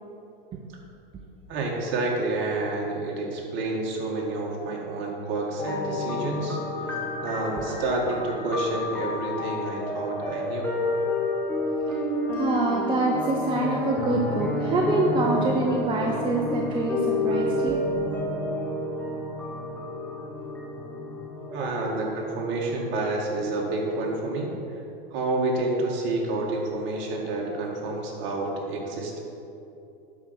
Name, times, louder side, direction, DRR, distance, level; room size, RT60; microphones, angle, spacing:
voice 1, 1.5-6.9 7.2-10.8 21.5-24.5 25.1-29.2, right 2 dB, 40° right, -1 dB, 2.0 m, -29 dB
sound 1, 5.6-24.5, left 2 dB, 5° left, 1.4 m, -30 dB
voice 2, 12.3-17.9 21.5-21.7, right 2 dB, 15° right, -1 dB, 0.7 m, -26 dB
11.5 x 4.6 x 5.8 m, 2.9 s
hypercardioid pair, 130°, 29 cm